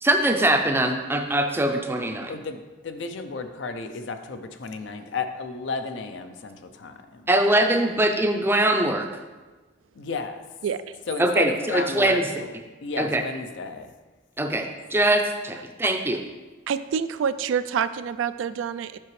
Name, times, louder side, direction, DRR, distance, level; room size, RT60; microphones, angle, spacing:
voice 1, 0.0-2.3 7.3-9.1 11.2-12.2 13.0-13.2 14.4-16.2, right 1 dB, 10° right, 4 dB, 0.4 m, -22 dB
voice 2, 2.3-7.3 9.9-10.4 11.1-12.5 12.8-13.9, left 4 dB, 65° left, 8 dB, 0.5 m, -33 dB
voice 3, 10.6-11.0 16.7-19.0, right 7 dB, 75° right, 13 dB, 0.3 m, -27 dB
7.5 x 5.8 x 3.1 m, 1.2 s
head